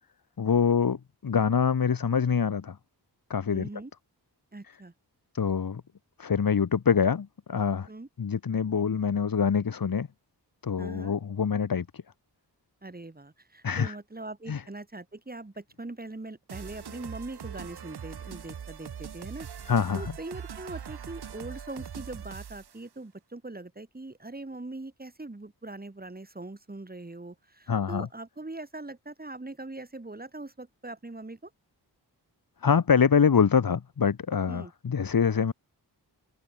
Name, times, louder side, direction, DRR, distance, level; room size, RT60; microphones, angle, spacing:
voice 1, 0.4-1.0 1.2-2.8 3.3-3.7 5.3-5.8 6.2-7.9 8.2-10.1 10.6-11.9 13.6-14.0 14.5-14.6 19.7-20.1 27.7-28.1 32.6-35.5, left 6 dB, 55° left, 1.5 m, -25 dB
voice 2, 3.5-3.9 4.5-4.9 7.9-8.1 10.8-11.1 12.8-19.5 19.9-31.5 34.5-34.7, right 2 dB, 20° right, 4.4 m, -41 dB
sound 1, 16.5-22.8, right 8 dB, 70° right, 1.3 m, -41 dB
wide cardioid pair, 115°, 40 cm